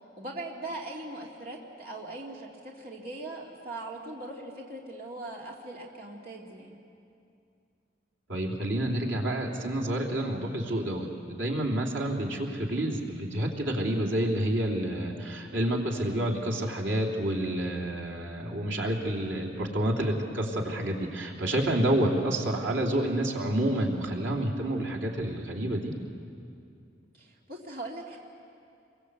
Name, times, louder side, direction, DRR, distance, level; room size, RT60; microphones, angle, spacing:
voice 1, 0.2-6.8 27.1-28.2, right 2 dB, 50° right, -2 dB, 2.4 m, -40 dB
voice 2, 8.3-25.9, right 1 dB, 90° right, -1 dB, 3.3 m, -29 dB
28.5 x 23.0 x 8.2 m, 2.5 s
head